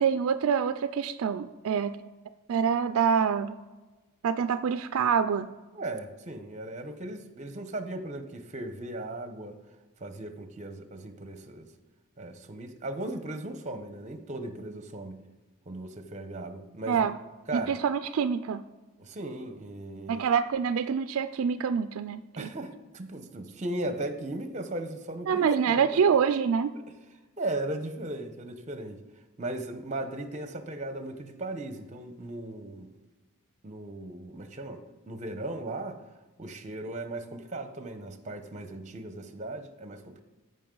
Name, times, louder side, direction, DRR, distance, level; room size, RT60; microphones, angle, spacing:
voice 1, 0.0-2.0 2.5-3.6 4.2-5.5 16.9-17.1 17.5-18.6 20.1-22.5 25.3-26.7, right 7 dB, 65° right, 11 dB, 0.3 m, -26 dB
voice 2, 5.7-9.6 10.0-11.7 12.2-15.2 15.7-17.1 17.5-17.8 19.0-20.3 22.4-26.0 27.4-29.0 29.4-32.9 33.6-36.0 36.4-40.2, right 1 dB, 35° right, 8 dB, 0.9 m, -37 dB
14.5 x 5.5 x 3.8 m, 1.2 s
head